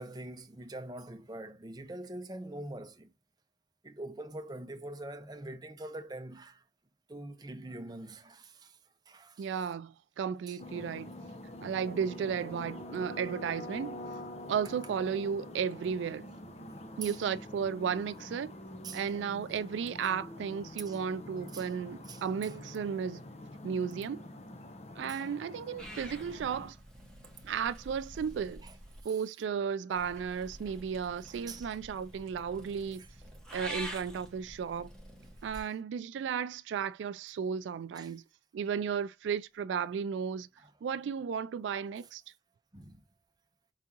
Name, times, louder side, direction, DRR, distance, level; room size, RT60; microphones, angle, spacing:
voice 1, 0.0-3.1 3.8-6.6 7.1-8.8 9.1-9.5 10.5-10.6 17.0-17.2 18.8-19.0 20.8-21.0 21.5-21.7 22.1-22.6 25.1-25.2 28.6-28.7 29.0-29.2 31.3-31.7 33.0-33.1 35.5-35.7 37.9-38.2 40.6-40.7 42.7-43.0, right 2 dB, 20° right, 0.6 m, -44 dB
voice 2, 9.4-11.1 11.6-14.0 14.5-16.3 17.0-18.6 18.9-23.2 23.6-24.2 25.0-26.8 27.4-28.6 29.0-33.0 33.5-34.9 35.4-38.2 38.5-40.5 40.8-42.2, right 7 dB, 85° right, 0.3 m, -34 dB
sound 1, 10.6-26.7, left 1 dB, 35° left, 0.6 m, -46 dB
Purr / Meow, 25.8-29.0 30.0-35.6, right 1 dB, 5° left, 1.2 m, -47 dB
4.8 x 3.5 x 2.8 m
head